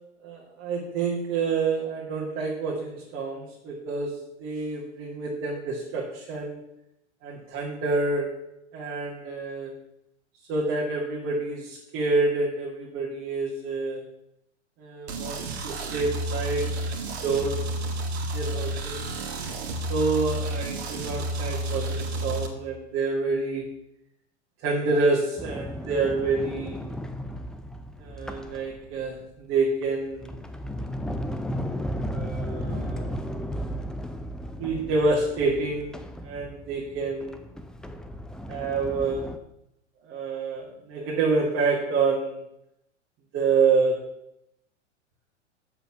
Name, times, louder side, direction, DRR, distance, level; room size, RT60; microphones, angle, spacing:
voice 1, 0.2-6.6 7.2-8.4 8.7-9.7 10.5-14.0 14.8-16.8 17.2-17.8 18.1-19.0 19.9-23.7 24.6-26.8 28.0-30.3 32.1-33.1 34.6-37.4 38.5-39.3 40.0-42.4 43.3-44.1, right 3 dB, 35° right, -3 dB, 2.3 m, -28 dB
sound 1, 15.1-22.5, right 1 dB, 60° right, 1.9 m, -31 dB
Sliding door, 25.4-29.2 29.8-39.4, equal, ahead, 0.5 m, -35 dB
7.9 x 7.2 x 6.1 m, 0.81 s
hypercardioid pair, 100°, 35 cm